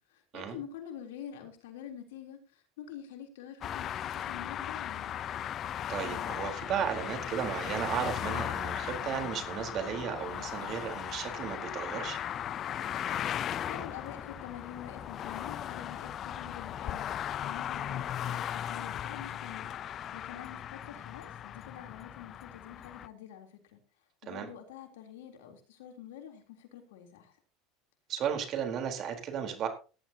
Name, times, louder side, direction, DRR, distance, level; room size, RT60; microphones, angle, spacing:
voice 1, 0.1-5.2 13.7-17.1 17.4-19.7 20.1-23.8 24.2-27.3, left 9 dB, 90° left, 4 dB, 3.6 m, -46 dB
sound 1, 3.6-23.1, left 10 dB, 45° left, 0.7 m, -37 dB
voice 2, 5.9-12.2 24.3-24.5 28.1-29.7, right 8 dB, 50° right, 5 dB, 4.1 m, -34 dB
17.5 x 11.5 x 2.9 m, 0.35 s
supercardioid pair, 110°, 0 cm